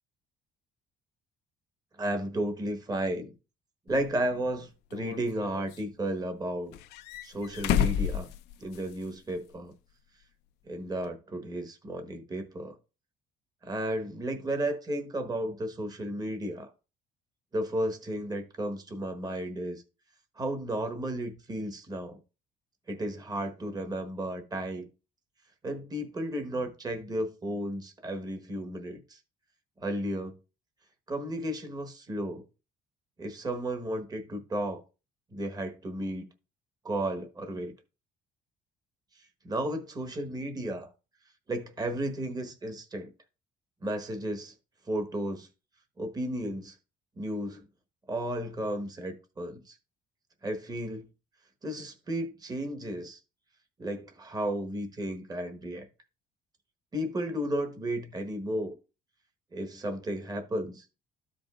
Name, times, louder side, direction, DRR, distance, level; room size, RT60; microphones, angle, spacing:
voice 1, 2.0-3.3 3.9-6.7 7.2-8.3 8.6-9.7 10.7-12.8 13.6-16.7 17.5-19.8 20.4-22.2 22.9-24.9 25.6-29.2 29.8-30.3 31.1-32.4 33.2-34.8 35.3-36.2 36.8-37.7 39.4-40.9 41.5-43.1 43.8-44.5 44.9-45.5 46.0-46.7 47.2-47.6 48.1-49.8 50.4-51.1 51.6-53.2 53.8-55.9 56.9-58.8 59.5-60.8, right 1 dB, 25° right, 1.2 m, -33 dB
sound 1, 3.9-4.0 4.9-5.8 6.7-9.1 9.4-9.5 11.0-11.1, left 9 dB, 85° left, 0.5 m, -31 dB
13.5 x 5.2 x 2.4 m
cardioid pair, 110°, 17 cm